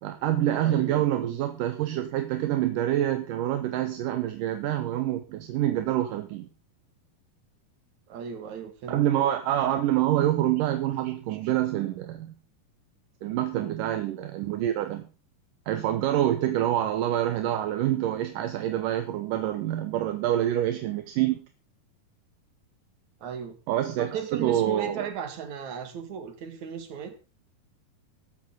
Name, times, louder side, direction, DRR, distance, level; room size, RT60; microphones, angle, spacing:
voice 1, 0.0-6.5 8.9-12.3 13.2-15.1 15.7-21.5 23.7-25.1, right 12 dB, 70° right, 8 dB, 2.3 m, -26 dB
voice 2, 0.6-1.4 8.1-9.0 11.0-11.5 13.6-13.8 23.2-23.6 23.9-27.1, right 7 dB, 55° right, 8 dB, 3.1 m, -36 dB
15.0 x 12.5 x 3.9 m, 0.33 s
omnidirectional pair, 4.5 m